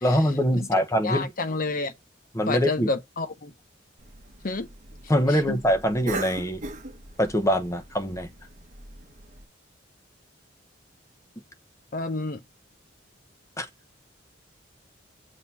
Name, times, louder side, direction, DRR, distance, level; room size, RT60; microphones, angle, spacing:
voice 1, 0.0-1.2 2.3-2.9 5.1-6.6 7.2-8.3 13.6-13.7, equal, 15° left, 1.0 m, -23 dB
voice 2, 1.0-1.9 2.5-3.5 4.4-4.7 5.3-5.6 11.9-12.4, left 3 dB, 45° left, 0.8 m, -29 dB
Cough, 4.0-9.4, right 2 dB, 40° right, 1.0 m, -40 dB
6.6 x 2.9 x 5.4 m
head